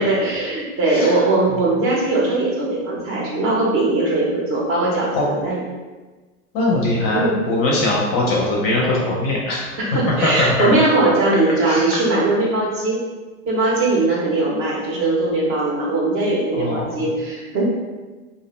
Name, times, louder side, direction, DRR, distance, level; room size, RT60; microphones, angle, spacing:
voice 1, 0.0-5.6 7.1-7.4 9.8-13.0 13.5-17.6, right 2 dB, 30° right, -4 dB, 0.6 m, -20 dB
voice 2, 0.9-1.2 5.1-5.2 6.5-9.7 10.2-10.7 11.6-11.9 16.5-17.1, left 2 dB, 35° left, -3 dB, 0.5 m, -21 dB
2.4 x 2.1 x 2.9 m, 1.3 s
supercardioid pair, 130°, 43 cm